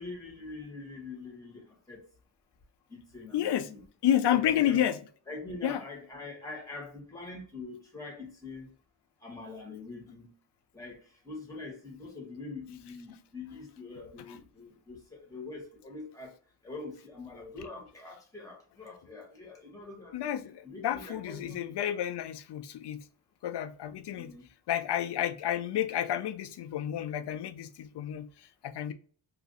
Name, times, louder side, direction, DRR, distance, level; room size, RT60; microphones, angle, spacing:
voice 1, 0.0-1.6 1.9-2.0 2.9-3.8 4.3-4.8 5.3-8.7 9.2-10.3 10.7-11.0 11.2-16.3 16.6-20.3 20.6-21.6 24.2-24.4, left 3 dB, 5° left, 1.2 m, -44 dB
voice 2, 3.3-3.7 4.0-5.0 5.6-5.8 14.3-14.4 20.1-23.0 23.4-24.3 24.7-28.9, left 11 dB, 60° left, 0.5 m, -30 dB
2.9 x 2.5 x 3.8 m
wide cardioid pair, 135°, 48 cm